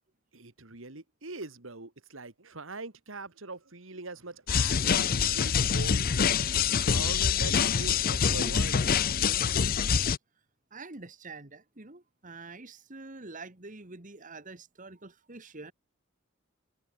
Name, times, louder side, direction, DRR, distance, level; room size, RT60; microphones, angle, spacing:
voice 1, 0.3-9.0, right 3 dB, 70° right, 2.3 m, -43 dB
sound 1, 4.5-10.2, left 7 dB, 45° left, 0.6 m, -25 dB
voice 2, 10.7-15.7, right 3 dB, 40° right, 2.0 m, -46 dB
head